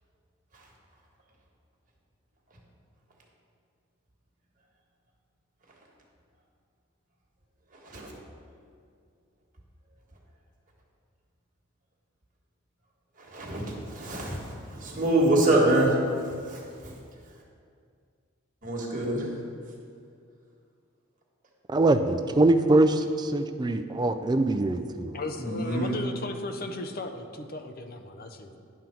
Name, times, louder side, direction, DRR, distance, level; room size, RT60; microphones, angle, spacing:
voice 1, 13.2-16.0 16.2-16.9 18.6-19.3 25.4-25.9, right 1 dB, 40° right, -2 dB, 1.4 m, -26 dB
voice 2, 21.7-25.2, right 2 dB, 20° right, 8 dB, 0.3 m, -23 dB
voice 3, 25.1-28.6, left 2 dB, 45° left, 6 dB, 0.5 m, -36 dB
10.5 x 3.8 x 5.8 m, 2.3 s
head